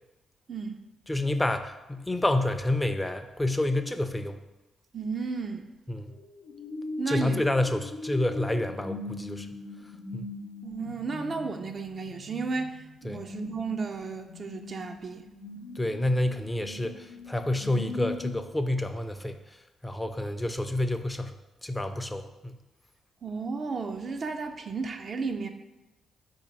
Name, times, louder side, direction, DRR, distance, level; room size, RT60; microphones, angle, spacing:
voice 1, 0.5-0.8 4.9-5.7 7.0-7.4 10.6-15.3 23.2-25.5, right 4 dB, 50° right, 5 dB, 0.4 m, -33 dB
voice 2, 1.1-4.4 5.9-6.2 7.1-9.5 10.1-10.3 13.0-13.2 15.8-19.4 19.8-21.3 21.6-22.6, left 1 dB, 15° left, 9 dB, 0.4 m, -29 dB
sound 1, 6.1-18.3, left 2 dB, 85° left, 0.7 m, -41 dB
4.3 x 2.8 x 4.2 m, 1.0 s
hypercardioid pair, 50°, 0 cm